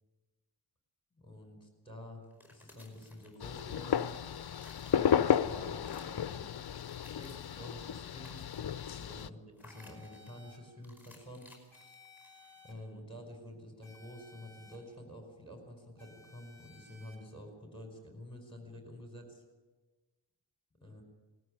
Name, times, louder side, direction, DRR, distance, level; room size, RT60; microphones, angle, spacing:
voice 1, 1.1-2.2 2.5-4.1 4.8-6.5 7.1-8.5 8.8-11.5 12.6-19.4 20.8-21.0, left 1 dB, 10° left, 4 dB, 4.9 m, -49 dB
sound 1, 2.2-3.8 4.1-5.4 5.7-6.3 6.7-7.6 8.0-8.8 9.6-10.4 10.8-12.5, left 2 dB, 5° right, 5.2 m, -59 dB
sound 2, 3.4-9.3, left 8 dB, 55° left, 0.6 m, -33 dB
sound 3, 9.7-10.6 11.7-12.7 13.8-14.8 16.0-17.2, left 3 dB, 65° right, 4.6 m, -58 dB
20.0 x 14.0 x 10.0 m, 1.2 s
wide cardioid pair, 115°, 45 cm